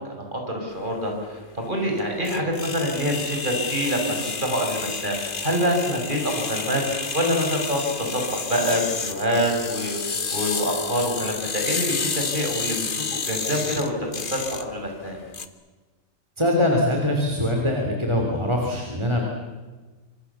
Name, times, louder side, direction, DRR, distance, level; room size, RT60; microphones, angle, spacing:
voice 1, 0.0-13.9 14.3-15.2, equal, 35° right, 1 dB, 6.0 m, -26 dB
sound 1, 0.8-15.5, left 5 dB, 40° left, 1.4 m, -31 dB
voice 2, 16.4-19.2, left 1 dB, 20° right, 1 dB, 3.3 m, -22 dB
26.5 x 25.5 x 7.1 m, 1.3 s
omnidirectional pair, 1.4 m